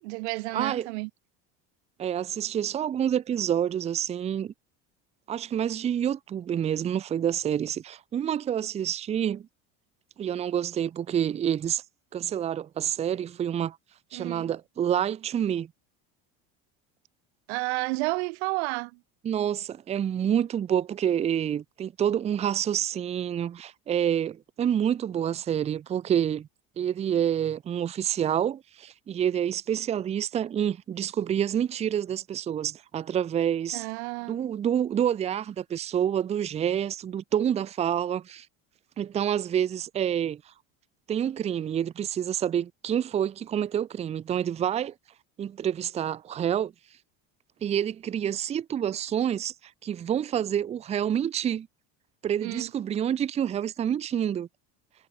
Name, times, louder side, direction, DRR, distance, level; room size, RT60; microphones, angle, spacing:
voice 1, 0.0-1.1 14.1-14.5 17.5-19.0 33.7-34.4 52.4-52.7, right 28 dB, 85° right, 1.3 m, -31 dB
voice 2, 0.5-0.9 2.0-4.5 5.3-9.5 10.2-11.8 12.1-13.8 14.1-15.7 19.2-26.5 26.8-33.8 34.3-38.5 39.0-40.5 41.1-44.9 45.4-46.7 47.6-49.5 49.8-51.7 52.2-54.5, right 9 dB, 20° right, 0.7 m, -28 dB
cardioid pair, 160°, 32 cm